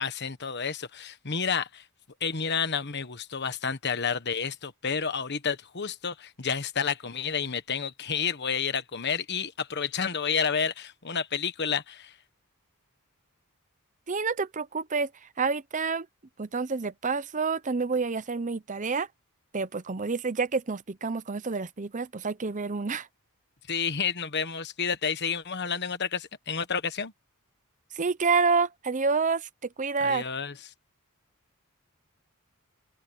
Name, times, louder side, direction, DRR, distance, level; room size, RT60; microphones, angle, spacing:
voice 1, 0.0-1.8 2.2-12.1 23.7-27.1 30.0-30.5, left 6 dB, 50° left, 1.3 m, -30 dB
voice 2, 14.1-16.1 16.4-19.1 19.5-23.1 27.9-30.3, right 4 dB, 35° right, 0.7 m, -28 dB
open air
head